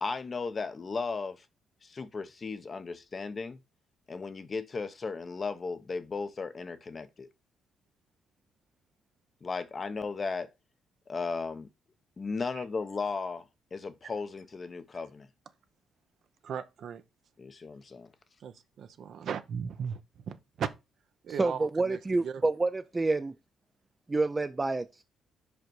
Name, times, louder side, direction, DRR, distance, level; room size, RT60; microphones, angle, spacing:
voice 1, 0.0-1.4 1.8-3.6 4.1-7.3 9.4-10.5 11.1-11.7 12.2-13.4 13.7-15.3 17.4-18.1, left 4 dB, 35° left, 0.7 m, -35 dB
voice 2, 16.4-17.0 18.4-20.0 20.3-20.7 21.2-22.5, right 7 dB, 65° right, 0.8 m, -37 dB
voice 3, 21.4-23.3 24.1-25.0, right 3 dB, 25° right, 0.4 m, -28 dB
5.1 x 5.1 x 4.6 m
cardioid pair, 90°, 0 cm